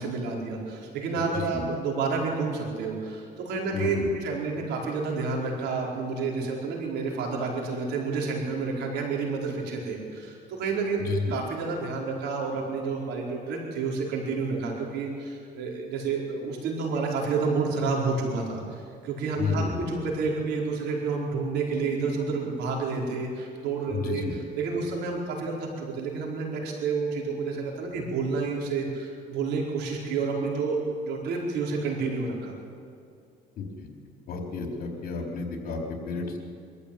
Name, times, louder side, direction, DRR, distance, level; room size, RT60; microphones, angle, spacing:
voice 1, 0.0-32.5, right 4 dB, 85° right, -1 dB, 4.7 m, -30 dB
voice 2, 1.2-1.6 3.7-4.1 11.0-11.3 19.4-19.8 23.9-24.3 33.6-33.9 34.3-36.4, left 4 dB, 60° left, 2 dB, 4.1 m, -31 dB
24.0 x 14.0 x 8.7 m, 2.3 s
cardioid pair, 110°, 17 cm